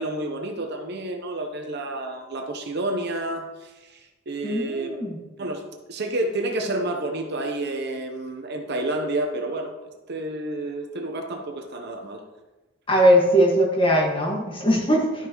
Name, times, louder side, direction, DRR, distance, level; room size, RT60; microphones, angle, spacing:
voice 1, 0.0-5.0 5.4-5.6 5.9-12.2, right 2 dB, 50° right, 4 dB, 0.8 m, -30 dB
voice 2, 4.4-5.2 12.9-15.3, equal, 25° left, -2 dB, 1.6 m, -20 dB
11.5 x 5.9 x 3.0 m, 1.1 s
head